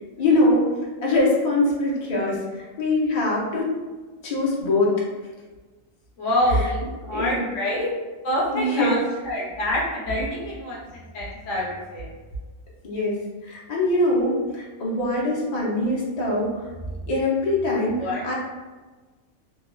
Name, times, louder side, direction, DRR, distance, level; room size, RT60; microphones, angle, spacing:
voice 1, 0.2-0.6 1.0-3.7 4.2-4.9 7.1-7.4 8.5-8.9 12.8-16.7 17.1-18.3, left 2 dB, 45° left, -5 dB, 0.6 m, -23 dB
voice 2, 6.2-7.9 8.2-12.1 18.0-18.2, equal, 65° left, -5 dB, 1.1 m, -26 dB
3.0 x 2.3 x 2.2 m, 1.3 s
omnidirectional pair, 1.4 m